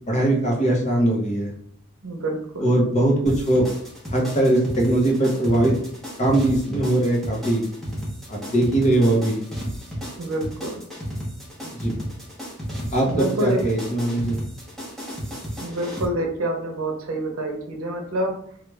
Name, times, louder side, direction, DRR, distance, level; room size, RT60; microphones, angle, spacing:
voice 1, 0.1-1.5 2.6-3.7 4.1-5.7 6.2-7.6 8.3-9.4 11.6-11.9 12.9-14.4, right 1 dB, 30° left, -1 dB, 0.8 m, -20 dB
voice 2, 2.0-2.7 10.2-10.8 13.1-13.6 15.6-18.4, right 1 dB, 80° right, 2 dB, 0.7 m, -27 dB
sound 1, 3.3-16.1, equal, ahead, 0.8 m, -33 dB
3.2 x 2.3 x 3.3 m, 0.69 s
head